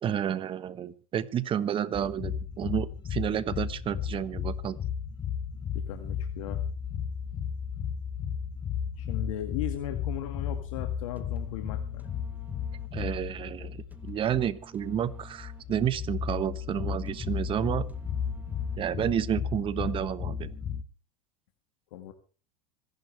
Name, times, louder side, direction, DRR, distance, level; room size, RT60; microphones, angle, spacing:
voice 1, 0.0-4.8 12.9-17.9 18.8-20.5, right 9 dB, 30° right, 15 dB, 1.2 m, -30 dB
sound 1, 1.9-20.8, left 8 dB, 25° left, 1.0 m, -34 dB
voice 2, 5.9-6.6 9.0-12.1 21.9-22.1, left 12 dB, 75° left, 6 dB, 1.9 m, -37 dB
sound 2, 11.1-19.2, right 2 dB, 10° right, 1.7 m, -55 dB
26.0 x 11.0 x 3.4 m, 0.36 s
supercardioid pair, 120°, 17 cm